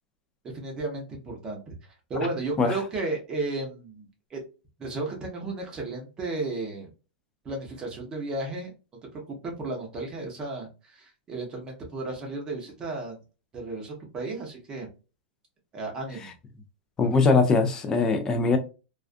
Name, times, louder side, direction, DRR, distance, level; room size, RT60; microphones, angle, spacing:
voice 1, 0.5-4.4 4.8-6.9 7.4-8.7 9.1-13.2 13.5-14.9 15.7-16.3, right 2 dB, 15° right, 0.7 m, -34 dB
voice 2, 17.0-18.6, left 4 dB, 10° left, 0.3 m, -21 dB
2.3 x 2.3 x 2.4 m
supercardioid pair, 170°, 5 cm